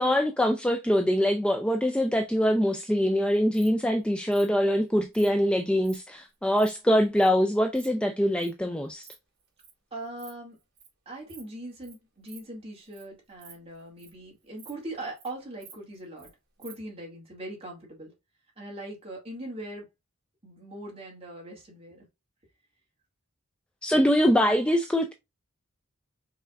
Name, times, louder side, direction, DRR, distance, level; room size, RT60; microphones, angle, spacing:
voice 1, 0.0-9.1 23.8-25.1, equal, 5° left, 0.3 m, -24 dB
Insect, 3.3-3.7 4.3-4.5 5.1-5.3 5.8-6.0 6.3-6.7 7.2-7.3 7.5-7.9 8.4-8.5 8.9-9.1 9.4-9.7 10.1-10.3 10.6-10.9 11.3-11.5 11.8-11.9 12.3-12.4 12.8-13.0 13.3-14.2 14.6-14.7 15.0-15.3 15.6-16.3 16.6-16.7, right 7 dB, 55° right, 2.3 m, -50 dB
voice 2, 9.9-10.6 11.1-16.3 16.6-18.1 18.6-19.9 20.4-22.1, right 1 dB, 25° right, 2.1 m, -40 dB
5.6 x 3.6 x 2.4 m
head